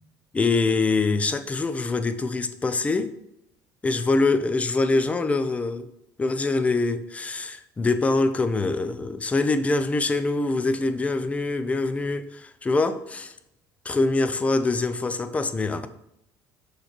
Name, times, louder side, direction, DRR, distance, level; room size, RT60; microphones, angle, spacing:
voice 1, 0.3-3.1 3.8-5.9 6.2-13.3 13.9-15.9, left 3 dB, 15° left, 0.5 m, -24 dB
6.6 x 3.3 x 5.9 m
cardioid pair, 120°, 8 cm